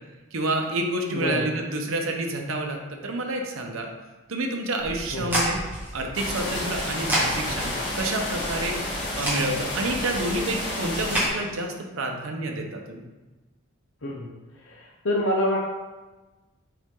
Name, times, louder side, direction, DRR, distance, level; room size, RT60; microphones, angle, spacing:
voice 1, 0.3-3.9 4.3-5.6 5.9-13.1, right 2 dB, 75° right, 2 dB, 0.9 m, -29 dB
voice 2, 1.1-1.6 5.1-5.4 14.0-14.3 14.6-15.6, left 1 dB, 70° left, -1 dB, 0.7 m, -27 dB
sound 1, 4.8-11.3, right 1 dB, 10° right, 1.8 m, -31 dB
sound 2, 6.1-11.3, left 1 dB, 55° left, 2.0 m, -31 dB
6.9 x 4.3 x 3.7 m, 1.2 s
head